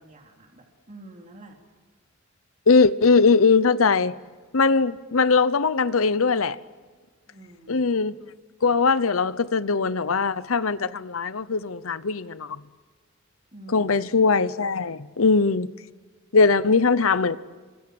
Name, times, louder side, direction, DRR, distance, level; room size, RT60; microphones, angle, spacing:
voice 1, 0.0-1.6 7.3-7.9 13.5-13.9, right 2 dB, 35° right, 3.2 m, -47 dB
voice 2, 2.7-4.1 4.5-6.6 7.7-8.1 8.6-12.6 13.7-15.7 16.3-17.4, left 4 dB, 80° left, 0.8 m, -20 dB
29.0 x 25.5 x 7.8 m
head